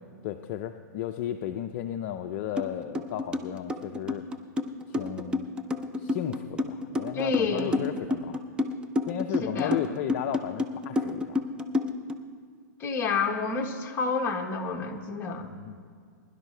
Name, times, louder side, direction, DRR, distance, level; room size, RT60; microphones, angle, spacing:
voice 1, 0.2-4.2 4.9-5.5 6.0-8.4 9.1-11.4 15.4-15.8, left 11 dB, 40° left, 6 dB, 0.5 m, -34 dB
sound 1, 2.6-2.7 2.9-12.2, left 2 dB, 10° right, 0.6 m, -29 dB
voice 2, 7.1-7.8 9.4-9.8 12.8-15.5, left 4 dB, 25° left, 1 dB, 1.4 m, -29 dB
21.5 x 11.5 x 3.3 m, 2.2 s
hypercardioid pair, 140°, 10 cm